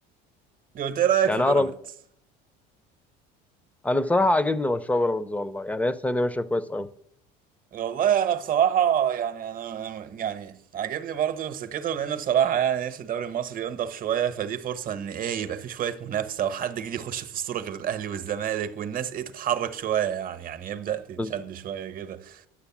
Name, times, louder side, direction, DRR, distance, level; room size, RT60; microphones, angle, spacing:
voice 1, 0.7-1.7 7.7-22.4, right 9 dB, 45° right, 1.0 m, -27 dB
voice 2, 1.3-1.7 3.8-6.9 21.2-21.3, left 2 dB, 5° left, 0.6 m, -24 dB
10.0 x 6.8 x 7.2 m
supercardioid pair, 105°, 21 cm